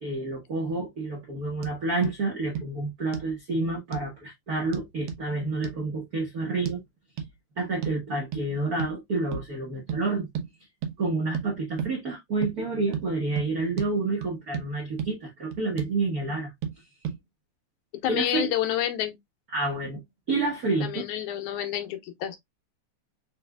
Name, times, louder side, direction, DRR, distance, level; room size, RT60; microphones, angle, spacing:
voice 1, 0.0-6.8 7.6-10.3 11.0-16.5 18.0-18.5 19.5-20.0 20.3-21.0, right 3 dB, 90° right, 0.8 m, -29 dB
sound 1, 1.6-1.8 2.0-2.2 2.6-2.7 3.1-3.3 3.9-4.1 4.7-5.2 5.6-5.8 6.7-6.8 7.2-7.3 7.8-8.0 8.3-8.5 8.8-9.0 9.3-9.5 9.9-10.0 10.3-10.5 10.8-11.0 11.3-11.5 11.8-11.9 12.4-12.6 12.9-13.1 13.4-13.5 13.8-13.9 14.2-14.7 15.0-15.1 15.5-16.0 16.6-16.8 17.0-17.2, right 7 dB, 70° right, 1.4 m, -33 dB
voice 2, 17.9-19.2 20.8-22.4, left 11 dB, 80° left, 2.2 m, -29 dB
4.7 x 3.3 x 2.2 m
omnidirectional pair, 3.5 m